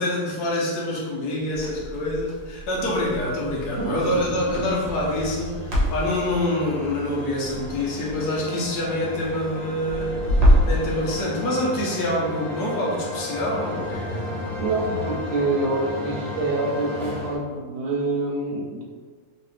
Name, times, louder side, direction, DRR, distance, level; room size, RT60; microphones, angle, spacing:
voice 1, 0.0-14.2, left 1 dB, 75° left, -3 dB, 1.3 m, -26 dB
Crackle, 1.5-10.8, equal, 50° right, 1.1 m, -26 dB
sound 1, 2.6-17.3, left 1 dB, 20° left, 1.3 m, -35 dB
voice 2, 3.8-4.6 14.6-18.8, right 2 dB, 80° right, -2 dB, 1.2 m, -26 dB
3.2 x 2.9 x 3.1 m, 1.5 s
omnidirectional pair, 1.7 m